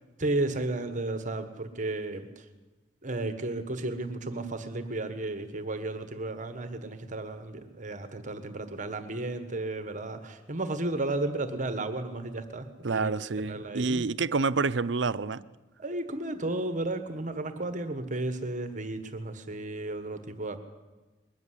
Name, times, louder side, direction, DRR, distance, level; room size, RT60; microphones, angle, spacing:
voice 1, 0.2-2.4 3.0-13.1 13.4-14.1 15.8-20.6, right 2 dB, 45° right, 1.5 m, -33 dB
voice 2, 12.8-15.4, right 4 dB, 80° right, 0.7 m, -28 dB
21.5 x 13.5 x 10.0 m
head